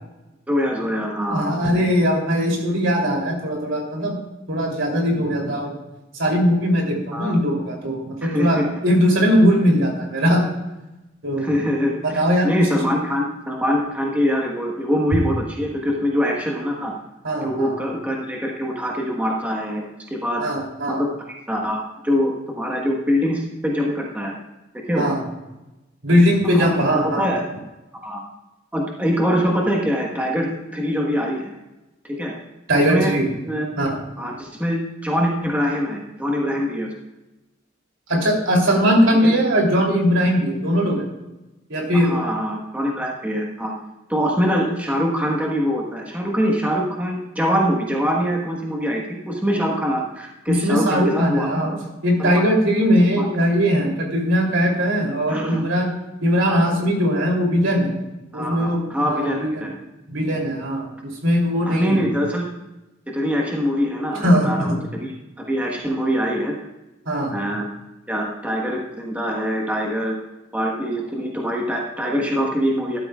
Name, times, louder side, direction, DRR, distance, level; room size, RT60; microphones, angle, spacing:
voice 1, 0.5-1.6 7.1-7.3 8.2-8.7 11.4-16.9 17.4-19.8 20.1-20.4 20.9-21.1 21.5-24.3 24.9-25.1 26.4-26.7 27.0-27.4 28.0-28.2 28.7-31.6 32.0-32.3 32.7-33.1 33.5-33.7 34.2-36.9 39.2-39.3 41.9-43.7 44.1-51.9 52.2-52.4 53.2-53.3 55.3-55.7 56.4-56.7 58.3-59.8 61.6-62.5 63.1-66.6 67.3-67.7 68.1-70.2 70.5-73.0, equal, 10° right, -1 dB, 1.3 m, -23 dB
voice 2, 1.3-4.1 4.5-5.7 6.2-10.4 11.2-11.5 12.0-12.8 17.2-17.7 20.4-21.0 25.0-25.2 26.0-27.4 32.7-33.3 33.8-34.0 38.1-41.0 41.7-42.1 50.5-51.7 52.0-55.9 56.2-57.9 58.3-58.8 59.0-59.7 60.1-60.9 61.2-62.0 64.2-64.8 67.1-67.4, equal, 70° right, 0 dB, 3.1 m, -20 dB
13.5 x 12.5 x 2.4 m, 1.0 s
head